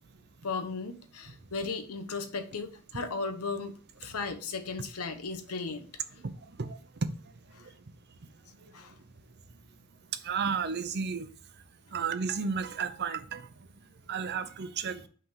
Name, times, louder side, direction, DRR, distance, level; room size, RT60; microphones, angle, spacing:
voice 1, 0.4-3.7 4.0-5.9 7.5-7.7 8.7-8.9, left 4 dB, 90° left, 0.9 m, -36 dB
voice 2, 6.2-7.8 8.2-9.1 9.7-9.8 10.0-11.6 11.9-15.1, right 5 dB, 50° right, 0.6 m, -35 dB
5.5 x 3.5 x 5.5 m
head